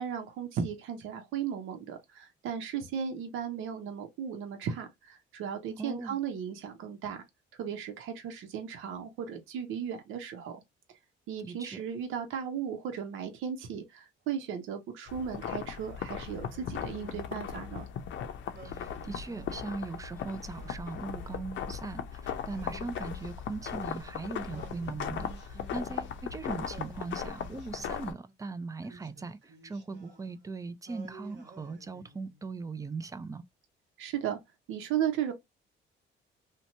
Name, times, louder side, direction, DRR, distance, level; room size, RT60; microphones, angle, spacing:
voice 1, 0.0-7.2 7.5-10.6 11.3-17.9 34.0-34.4 34.7-35.3, right 8 dB, 90° right, 0.7 m, -36 dB
voice 2, 5.8-6.2 11.4-11.8 18.6-33.4, right 3 dB, 15° right, 0.4 m, -39 dB
sound 1, 15.1-28.1, left 8 dB, 70° left, 0.6 m, -38 dB
Singing, 16.4-17.9 18.5-19.9 20.5-21.8 22.4-24.0 24.5-26.3 26.7-28.3 28.8-30.5 30.9-32.5, right 3 dB, 60° right, 1.0 m, -53 dB
2.9 x 2.2 x 2.6 m
cardioid pair, 90°, 20 cm